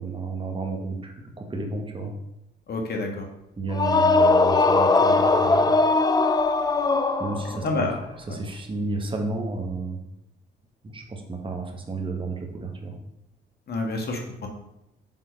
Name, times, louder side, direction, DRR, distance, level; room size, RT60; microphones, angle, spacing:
voice 1, 0.0-2.1 3.6-5.7 7.2-7.9 8.3-10.0 10.8-13.0, right 3 dB, 25° right, 2 dB, 1.3 m, -32 dB
voice 2, 2.7-3.3 7.6-8.0 13.7-14.5, left 2 dB, 55° left, 2 dB, 1.5 m, -28 dB
sound 1, 3.7-7.7, left 3 dB, 20° left, 0.4 m, -20 dB
5.6 x 3.9 x 5.2 m, 0.84 s
cardioid pair, 90°, 20 cm